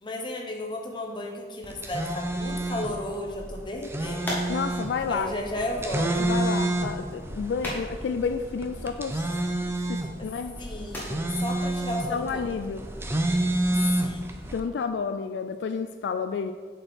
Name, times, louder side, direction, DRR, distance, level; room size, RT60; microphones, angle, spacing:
voice 1, 0.0-4.4 5.1-6.3 10.6-12.5 13.7-14.3, left 1 dB, 25° left, 1 dB, 0.9 m, -34 dB
sound 1, 1.6-14.6, right 1 dB, 15° right, 0.5 m, -29 dB
sound 2, 3.4-13.1, left 1 dB, 10° left, 1.5 m, -42 dB
voice 2, 4.5-5.4 6.2-9.2 9.7-10.6 12.1-12.9 14.5-16.5, left 5 dB, 70° left, 9 dB, 0.3 m, -30 dB
7.8 x 4.4 x 4.4 m, 1.5 s
head